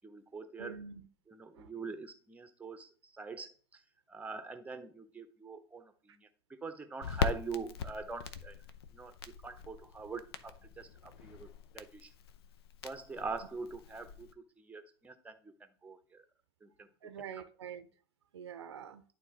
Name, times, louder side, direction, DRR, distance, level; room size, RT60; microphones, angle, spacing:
voice 1, 0.0-0.8 1.3-3.8 4.1-8.6 8.9-11.5 11.7-12.1 12.8-16.2 16.6-16.9, right 4 dB, 10° right, 0.9 m, -44 dB
voice 2, 0.6-1.1 1.5-1.7 17.0-17.9 18.3-19.0, right 7 dB, 70° right, 0.7 m, -45 dB
Crackle, 7.0-14.3, left 7 dB, 65° left, 0.7 m, -41 dB
11.0 x 3.9 x 2.9 m
figure-of-eight pair, 85°, 14 cm